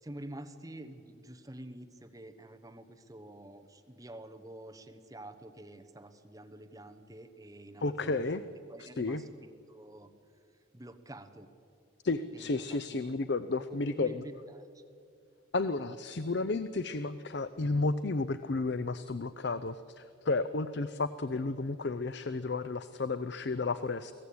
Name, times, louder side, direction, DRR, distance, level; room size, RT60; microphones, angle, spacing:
voice 1, 0.0-8.4 8.7-10.1 10.7-11.5 12.3-13.2 13.9-14.8, right 1 dB, 15° right, 7 dB, 1.1 m, -48 dB
voice 2, 7.8-8.4 8.8-9.2 12.0-14.3 15.5-24.1, left 3 dB, 55° left, 13 dB, 0.6 m, -32 dB
24.0 x 17.0 x 8.6 m, 2.4 s
head